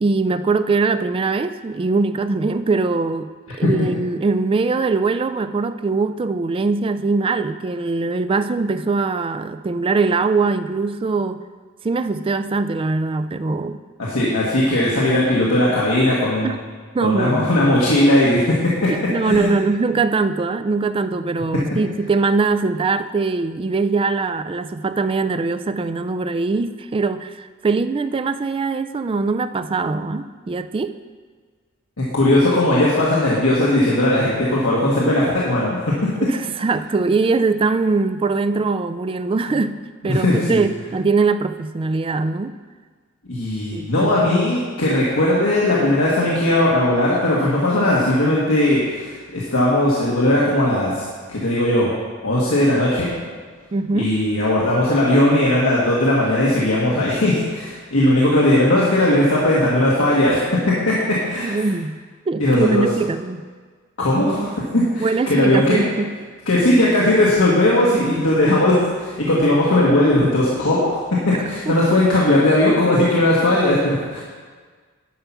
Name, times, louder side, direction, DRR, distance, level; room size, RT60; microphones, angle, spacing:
voice 1, 0.0-3.3 3.6-11.4 11.8-13.8 16.4-16.6 16.9-17.5 18.9-30.9 36.2-39.7 40.0-42.5 43.7-44.1 53.7-54.1 61.4-62.0 62.3-63.4 64.2-64.5 65.0-66.1 71.3-71.7, right 3 dB, 25° right, 10 dB, 0.3 m, -22 dB
voice 2, 14.0-16.5 17.0-18.9 19.2-19.5 32.0-36.1 39.5-39.6 40.0-40.6 43.3-51.9 52.2-53.1 53.9-61.6 62.4-62.9 64.0-65.8 66.5-74.2, left 1 dB, 75° left, -6 dB, 1.5 m, -18 dB
10.5 x 5.6 x 5.9 m, 1.5 s
head